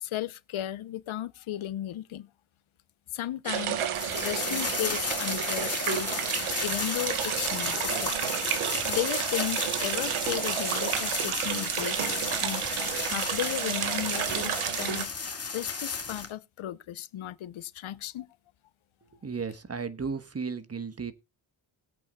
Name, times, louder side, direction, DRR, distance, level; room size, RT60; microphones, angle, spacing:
voice 1, 0.0-2.3 3.1-3.9 4.2-6.1 6.6-8.1 8.8-12.7 13.0-15.1 15.5-18.3, left 13 dB, 75° left, 0.8 m, -35 dB
sound 1, 3.5-15.1, right 10 dB, 85° right, 1.2 m, -31 dB
sound 2, 3.9-16.3, left 4 dB, 30° left, 1.8 m, -34 dB
voice 2, 19.2-21.1, right 5 dB, 30° right, 1.3 m, -34 dB
20.0 x 8.3 x 2.3 m
cardioid pair, 80°, 49 cm